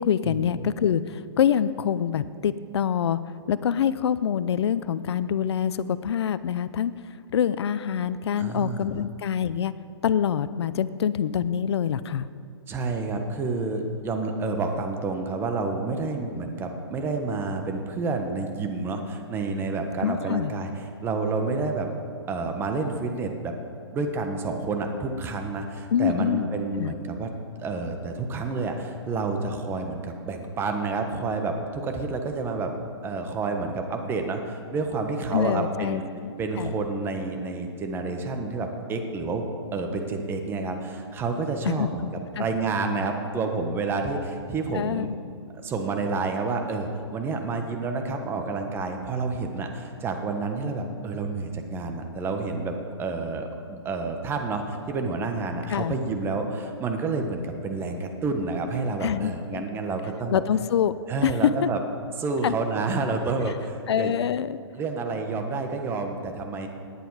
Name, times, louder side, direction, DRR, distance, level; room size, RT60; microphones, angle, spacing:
voice 1, 0.0-3.2 3.5-6.9 7.3-9.7 10.0-12.3 20.0-20.5 25.9-26.5 26.8-26.9 35.3-36.7 41.7-42.1 42.4-42.5 44.7-45.1 55.7-56.0 59.0-59.6 60.3-60.9 61.2-61.7 62.4-62.6 63.4-63.5 63.9-64.6, left 8 dB, 65° left, 16 dB, 0.6 m, -25 dB
voice 2, 8.4-8.9 12.7-20.7 21.0-21.9 22.3-23.5 23.9-27.3 27.6-32.7 33.0-36.0 36.4-45.1 45.6-60.4 61.1-61.8 62.2-64.1 64.7-66.7, right 3 dB, 15° right, 4 dB, 1.2 m, -29 dB
18.0 x 10.0 x 4.8 m, 2.3 s
hypercardioid pair, 145°, 15 cm